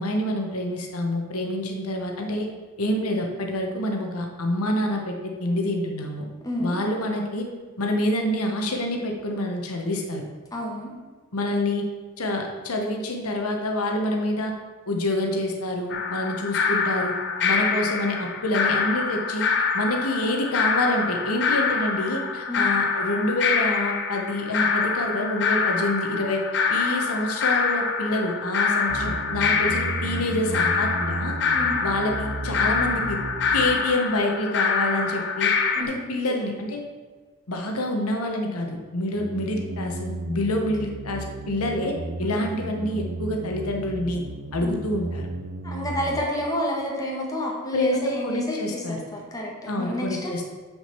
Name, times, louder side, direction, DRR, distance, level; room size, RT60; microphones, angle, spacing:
voice 1, 0.0-2.5 2.8-6.3 6.6-7.4 7.8-10.2 11.3-11.8 12.2-14.5 14.9-17.1 17.4-19.5 19.7-26.4 26.7-31.3 31.8-33.2 33.5-35.5 35.8-36.8 37.5-41.9 42.2-44.2 44.5-45.3 47.7-49.0 49.7-50.5, left 1 dB, 85° left, 2 dB, 1.2 m, -27 dB
voice 2, 6.4-6.8 10.5-10.9 22.5-22.7 31.5-31.8 35.7-36.4 42.2-42.3 44.6-44.7 45.6-50.3, left 1 dB, 15° left, -2 dB, 1.5 m, -30 dB
sound 1, 15.9-35.8, left 5 dB, 55° left, 0.8 m, -25 dB
sound 2, 28.9-33.9 39.1-46.2, right 2 dB, 60° right, 0.6 m, -34 dB
6.3 x 5.1 x 6.7 m, 1.4 s
head